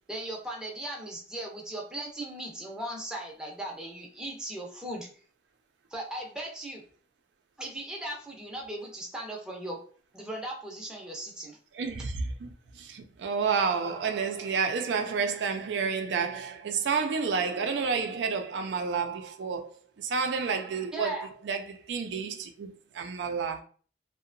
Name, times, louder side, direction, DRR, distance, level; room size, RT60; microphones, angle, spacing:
voice 1, 0.1-5.1 5.9-6.8 7.6-9.8 10.1-11.6 20.9-21.3, right 1 dB, 5° right, 0.5 m, -38 dB
voice 2, 11.7-12.5 12.7-19.7 20.0-23.6, right 5 dB, 90° right, 0.4 m, -30 dB
2.7 x 2.1 x 2.5 m
head